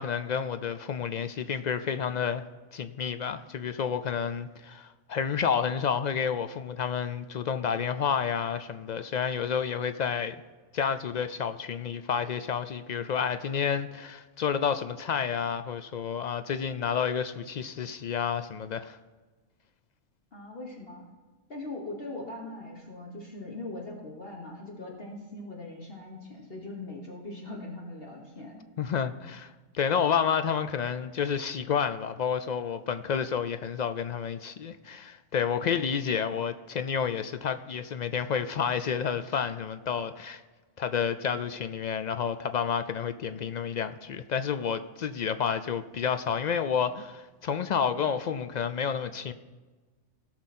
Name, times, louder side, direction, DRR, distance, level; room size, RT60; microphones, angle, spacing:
voice 1, 0.0-2.5 2.7-10.4 10.7-19.0 28.8-40.4 40.8-49.3, left 7 dB, 65° left, 0.4 m, -30 dB
voice 2, 20.3-21.1 21.5-28.6, left 2 dB, 50° left, 1.6 m, -41 dB
17.5 x 6.3 x 4.2 m
omnidirectional pair, 1.3 m